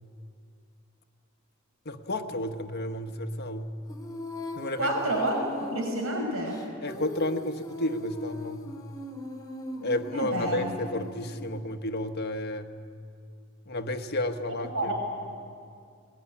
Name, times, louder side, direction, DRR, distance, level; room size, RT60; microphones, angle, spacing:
voice 1, 1.8-3.7 4.6-4.9 6.8-8.6 9.8-12.7 13.7-15.0, left 1 dB, 50° left, 7 dB, 1.3 m, -32 dB
Female singing, 3.9-11.6, left 1 dB, 20° left, 2.3 m, -39 dB
voice 2, 4.8-5.4 5.7-6.6 10.1-10.7 14.7-15.0, right 1 dB, 85° right, 0 dB, 5.5 m, -29 dB
21.0 x 19.5 x 10.0 m, 2.4 s
head